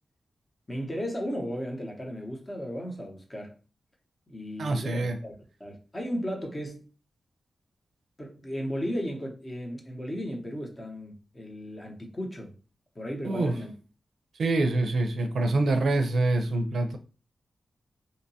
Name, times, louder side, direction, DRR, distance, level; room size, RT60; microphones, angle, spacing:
voice 1, 0.7-3.5 4.3-6.8 8.2-12.5 13.0-13.7, equal, 25° left, 0.8 m, -35 dB
voice 2, 4.6-5.2 13.2-13.5 14.4-17.0, right 2 dB, 80° right, 0.4 m, -25 dB
2.8 x 2.2 x 2.7 m
wide cardioid pair, 85°, 0 cm